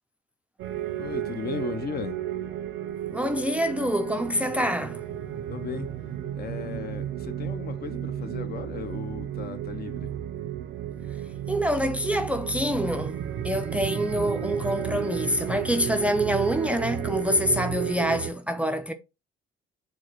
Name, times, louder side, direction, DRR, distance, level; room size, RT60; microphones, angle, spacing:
sound 1, 0.6-18.3, right 10 dB, 80° right, 0.6 m, -33 dB
voice 1, 1.0-2.3 5.5-10.2, left 6 dB, 50° left, 0.8 m, -36 dB
voice 2, 3.1-5.0 11.5-18.9, equal, 5° right, 0.4 m, -26 dB
4.5 x 2.2 x 4.6 m
cardioid pair, 90°, 20 cm